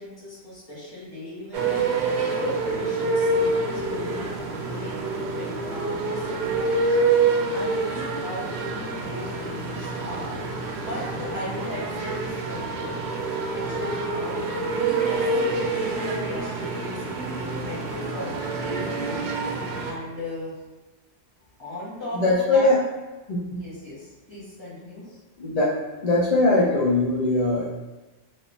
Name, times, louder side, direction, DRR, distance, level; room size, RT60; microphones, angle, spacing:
voice 1, 0.0-1.8 2.3-7.1 7.5-10.4 10.8-12.9 13.5-17.0 17.6-19.3 19.8-20.5 21.6-22.7 23.6-25.0, left 1 dB, 20° left, -11 dB, 1.6 m, -37 dB
sound 1, 1.5-19.9, right 3 dB, 65° right, 0.8 m, -27 dB
voice 2, 22.1-22.8 23.3-23.6 25.4-25.8 26.0-27.7, left 2 dB, 50° left, -6 dB, 0.4 m, -21 dB
3.3 x 2.9 x 2.7 m, 1.2 s
omnidirectional pair, 1.3 m